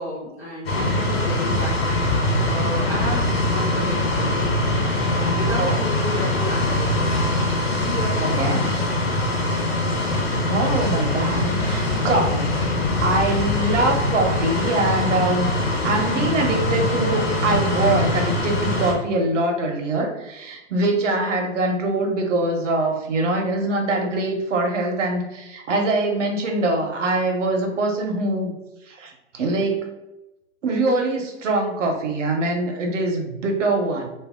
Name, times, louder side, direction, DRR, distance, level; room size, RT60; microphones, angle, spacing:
voice 1, 0.0-4.5 5.1-7.2 7.8-8.6, left 1 dB, 15° left, -9 dB, 0.3 m, -32 dB
sound 1, 0.7-18.9, left 1 dB, 55° left, 1.1 m, -22 dB
voice 2, 10.5-12.6 13.0-15.5 15.8-28.5 28.8-29.9 30.6-34.1, right 2 dB, 80° right, 2 dB, 1.1 m, -23 dB
2.8 x 2.7 x 3.6 m, 0.96 s
hypercardioid pair, 165°, 37 cm